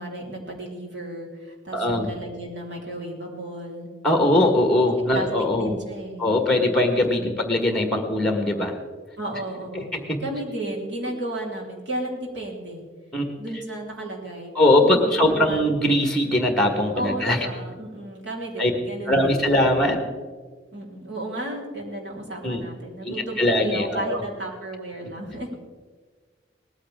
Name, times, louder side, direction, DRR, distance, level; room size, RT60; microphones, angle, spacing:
voice 1, 0.0-3.9 5.1-5.3 5.6-6.3 9.2-9.9 10.2-12.8 13.4-14.5 14.8-15.7 17.0-19.9 20.7-25.5, right 1 dB, 80° right, -3 dB, 4.1 m, -33 dB
voice 2, 1.7-2.1 4.0-5.7 6.2-8.7 9.7-10.2 13.1-13.2 14.5-17.4 18.6-18.7 19.1-20.0 22.4-22.6 23.0-24.2, left 1 dB, 5° left, 4 dB, 1.6 m, -21 dB
19.5 x 14.5 x 3.7 m, 1.5 s
head